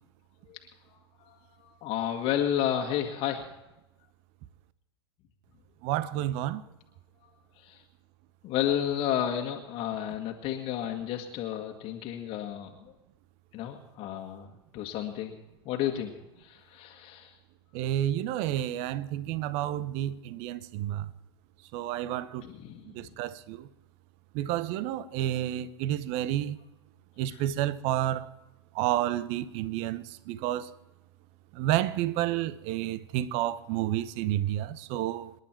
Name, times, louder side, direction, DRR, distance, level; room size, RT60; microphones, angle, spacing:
voice 1, 1.2-3.5 7.6-7.8 8.4-12.9 13.5-14.5 14.7-15.3 15.6-16.1 16.4-17.3 22.4-22.9 27.3-27.4, left 10 dB, 40° left, 1.7 m, -32 dB
voice 2, 5.8-6.6 17.7-21.1 21.7-22.4 22.8-23.7 24.3-26.6 27.2-28.3 28.7-30.7 31.5-35.3, right 13 dB, 45° right, 0.9 m, -30 dB
27.0 x 11.0 x 4.5 m
hypercardioid pair, 95°, 14 cm